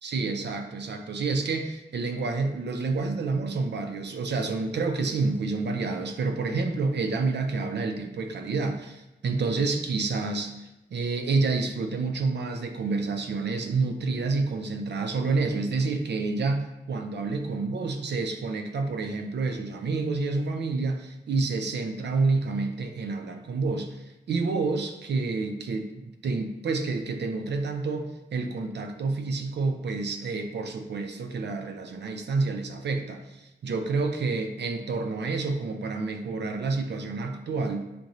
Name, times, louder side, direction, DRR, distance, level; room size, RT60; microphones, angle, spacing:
voice 1, 0.0-37.8, right 3 dB, 75° right, 5 dB, 0.5 m, -29 dB
5.1 x 2.5 x 2.9 m, 0.97 s
wide cardioid pair, 150°, 18 cm